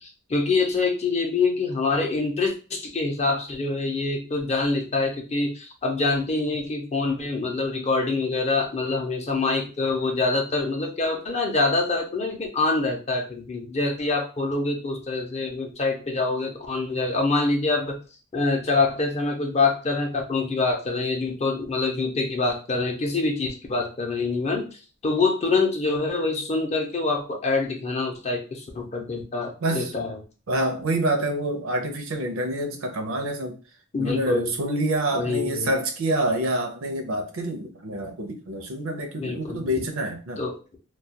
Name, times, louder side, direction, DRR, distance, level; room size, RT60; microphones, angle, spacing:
voice 1, 0.0-18.0 18.3-30.2 33.9-34.5 35.1-35.7 39.1-39.6 40.4-40.8, left 3 dB, 30° left, 0.5 m, -25 dB
voice 2, 29.6-29.9 30.5-33.6 34.0-40.4, right 1 dB, 70° right, 0.5 m, -27 dB
2.3 x 2.2 x 2.8 m
head